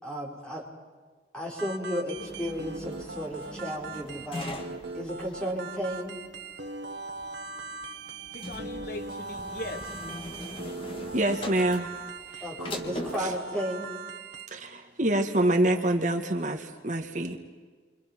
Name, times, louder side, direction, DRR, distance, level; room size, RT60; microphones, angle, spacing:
voice 1, 0.0-0.6 1.3-4.6 4.9-6.2 12.4-13.9, equal, 5° left, -3 dB, 5.2 m, -33 dB
sound 1, 1.6-14.5, right 3 dB, 85° right, 1.4 m, -40 dB
sound 2, 2.2-13.4, left 1 dB, 30° left, 1.7 m, -42 dB
voice 2, 8.3-9.9, left 1 dB, 55° left, 7 dB, 1.2 m, -39 dB
voice 3, 11.1-11.9 12.4-12.5 13.2-13.3 14.5-17.4, right 1 dB, 45° right, 4 dB, 1.6 m, -26 dB
29.5 x 25.0 x 6.0 m, 1.5 s
head